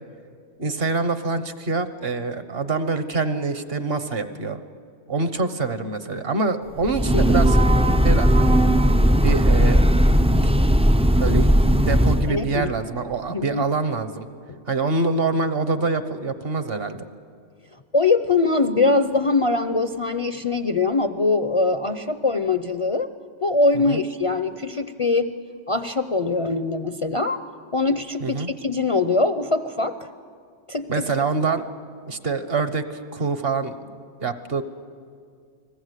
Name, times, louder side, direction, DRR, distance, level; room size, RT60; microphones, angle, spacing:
voice 1, 0.6-4.6 5.1-7.6 8.0-8.5 9.2-9.8 10.2-10.7 11.2-11.5 11.9-14.3 14.7-17.1 23.7-24.0 28.2-28.5 30.9-31.6 32.1-34.6, right 3 dB, 55° right, 10 dB, 1.4 m, -25 dB
Breathing / Train, 6.8-12.4, equal, 10° right, 0.3 m, -17 dB
voice 2, 12.3-12.7 13.3-13.6 17.9-23.1 23.4-25.3 25.7-27.4 27.7-30.0 30.7-31.1, left 3 dB, 35° left, 9 dB, 0.6 m, -22 dB
30.0 x 20.0 x 8.3 m, 2.2 s
omnidirectional pair, 1.2 m